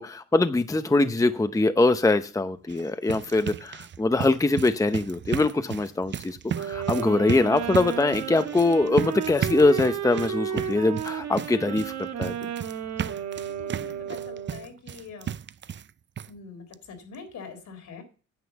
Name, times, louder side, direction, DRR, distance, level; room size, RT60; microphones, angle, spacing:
voice 1, 0.0-12.3, left 2 dB, 10° left, 10 dB, 0.8 m, -23 dB
sound 1, 2.6-15.9 16.2-16.3 16.7-16.8 17.1-17.2, right 9 dB, 40° right, 0.5 m, -34 dB
sound 2, 6.5-14.7, right 9 dB, 60° right, 1.7 m, -33 dB
voice 2, 13.4-15.4 16.3-18.0, left 5 dB, 70° left, 6 dB, 3.8 m, -44 dB
9.7 x 7.6 x 7.2 m, 0.38 s
cardioid pair, 90°, 30 cm